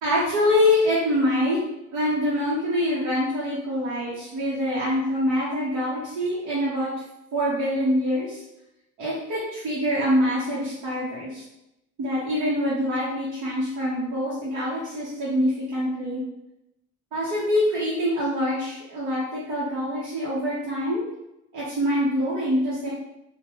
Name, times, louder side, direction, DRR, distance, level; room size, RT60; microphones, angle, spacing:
voice 1, 0.0-1.6 1.9-6.9 7.3-8.4 9.0-11.4 12.0-16.2 17.1-21.0 21.5-22.9, left 1 dB, 90° right, -8 dB, 0.9 m, -25 dB
2.8 x 2.1 x 3.1 m, 0.88 s
cardioid pair, 90°, 30 cm